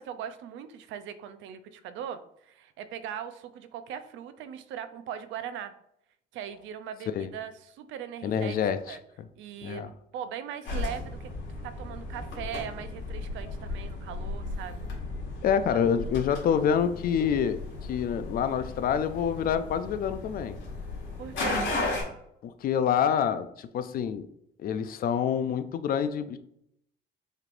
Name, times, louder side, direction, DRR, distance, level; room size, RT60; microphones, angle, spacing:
voice 1, 0.0-5.7 6.3-8.6 8.9-9.0 9.4-11.3 11.6-14.9 15.7-15.8 21.2-21.7, right 9 dB, 80° right, 11 dB, 0.5 m, -40 dB
voice 2, 8.2-9.0 9.6-9.9 15.4-20.6 22.4-24.3 24.6-26.4, left 8 dB, 50° left, 12 dB, 0.4 m, -27 dB
sound 1, 10.6-22.0, left 2 dB, 70° left, 1.8 m, -35 dB
6.5 x 3.2 x 2.5 m, 0.75 s
cardioid pair, 130°, 20 cm